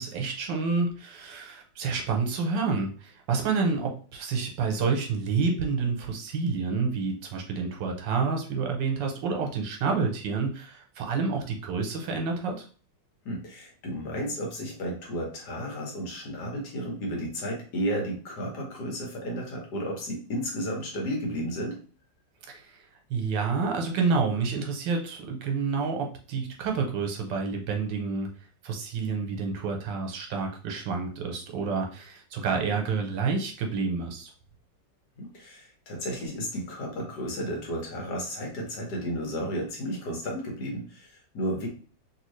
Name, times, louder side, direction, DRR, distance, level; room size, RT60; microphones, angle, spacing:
voice 1, 0.0-12.6 22.5-22.8 23.1-28.3 28.6-34.3, right 4 dB, 80° right, 2 dB, 1.4 m, -29 dB
voice 2, 13.2-21.8 35.2-41.7, equal, 65° left, 0 dB, 1.6 m, -33 dB
3.2 x 2.8 x 3.1 m, 0.40 s
omnidirectional pair, 1.9 m